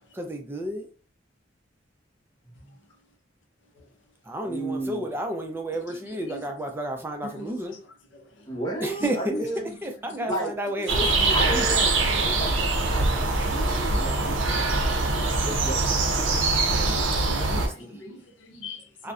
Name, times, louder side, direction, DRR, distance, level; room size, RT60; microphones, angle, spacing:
voice 1, 0.1-0.9 4.2-7.8 8.8-9.5 9.8-11.8 13.4-13.5 17.2-18.0 19.0-19.1, right 1 dB, 10° right, 0.3 m, -32 dB
voice 2, 4.4-5.1 8.5-9.7 10.3-10.5 11.3-12.5 12.9-13.1 13.5-14.6 15.4-16.1, right 1 dB, 20° left, 0.9 m, -32 dB
sound 1, 10.9-17.7, right 3 dB, 85° right, 0.5 m, -23 dB
voice 3, 13.9-14.8 15.1-15.4 16.9-18.8, equal, 75° left, 0.6 m, -43 dB
2.5 x 2.0 x 2.4 m
head